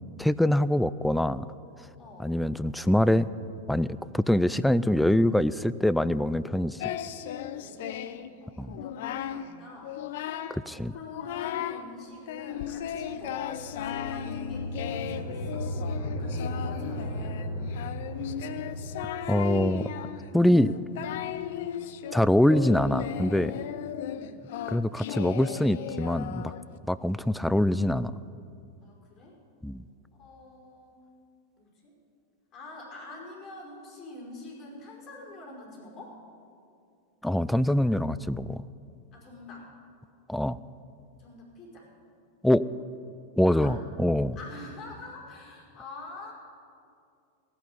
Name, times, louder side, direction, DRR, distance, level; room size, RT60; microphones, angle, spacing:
voice 1, 0.2-1.5 2.2-3.3 3.7-6.9 8.6-8.7 10.5-10.9 19.3-19.8 20.3-20.7 22.1-23.5 24.7-26.5 26.9-28.1 29.6-29.8 37.2-38.6 40.3-40.6 42.4-42.6 43.4-44.4, left 1 dB, ahead, 16 dB, 0.4 m, -24 dB
voice 2, 2.0-2.3 7.5-10.0 10.9-15.9 16.2-17.4 19.2-19.6 24.1-24.4 28.8-29.4 30.1-31.0 31.5-31.9 32.5-36.2 39.1-39.7 41.2-41.9 43.4-43.8 44.3-46.3, left 2 dB, 30° left, -2 dB, 5.1 m, -46 dB
Singing, 6.8-8.3 8.7-9.4 9.8-10.6 10.9-11.8 12.3-26.8, left 10 dB, 55° left, 0.6 m, -36 dB
sound 1, 12.5-22.8, equal, 45° right, 4.6 m, -37 dB
16.0 x 8.7 x 9.6 m, 2.4 s
figure-of-eight pair, 90°, 0 cm